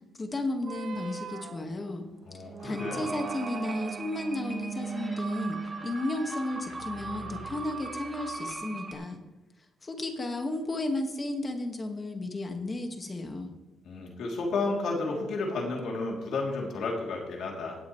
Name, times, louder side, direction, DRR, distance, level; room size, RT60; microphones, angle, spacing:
voice 1, 0.2-2.1 2.6-9.2 9.8-13.5, left 2 dB, 30° left, 5 dB, 1.8 m, -33 dB
sound 1, 0.6-8.4, right 6 dB, 60° right, 0.6 m, -40 dB
voice 2, 2.2-3.1 13.8-17.8, left 3 dB, 70° left, -1 dB, 3.1 m, -32 dB
sound 2, 2.7-8.9, right 3 dB, 20° right, 2.1 m, -40 dB
17.5 x 8.1 x 3.2 m, 1.1 s
cardioid pair, 90°, 0 cm